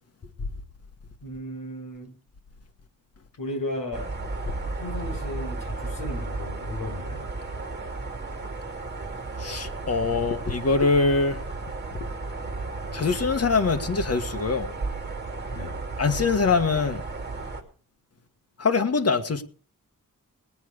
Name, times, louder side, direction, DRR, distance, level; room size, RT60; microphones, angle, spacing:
voice 1, 1.2-2.1 3.4-4.1 4.8-7.3 15.5-15.8, left 1 dB, 80° left, 4.9 m, -35 dB
sound 1, 3.9-17.6, right 3 dB, 30° right, 2.7 m, -34 dB
voice 2, 9.4-11.4 12.9-14.7 16.0-17.0 18.6-19.4, left 4 dB, 45° left, 1.6 m, -23 dB
19.5 x 9.5 x 5.0 m
wide cardioid pair, 130°, 33 cm